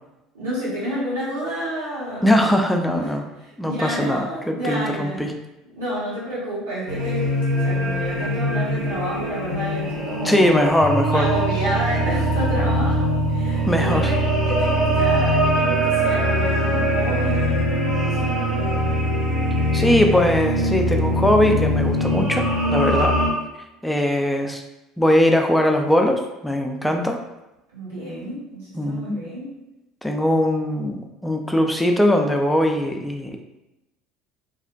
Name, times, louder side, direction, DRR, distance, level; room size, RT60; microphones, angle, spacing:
voice 1, 0.3-2.4 3.0-3.1 3.4-5.3 5.8-7.3 7.6-10.6 11.1-18.7 27.7-29.5, equal, 75° right, -8 dB, 1.1 m, -30 dB
voice 2, 2.2-3.2 3.6-5.3 10.2-11.3 13.7-14.1 19.7-23.2 23.8-24.6 25.0-27.2 28.8-29.2 30.0-33.4, left 1 dB, 5° left, 3 dB, 0.4 m, -20 dB
sound 1, 6.9-23.3, left 1 dB, 45° right, 0.9 m, -23 dB
sound 2, 10.8-22.6, right 8 dB, 35° left, 0.8 m, -27 dB
2.5 x 2.1 x 2.5 m, 0.96 s
figure-of-eight pair, 65°, 0 cm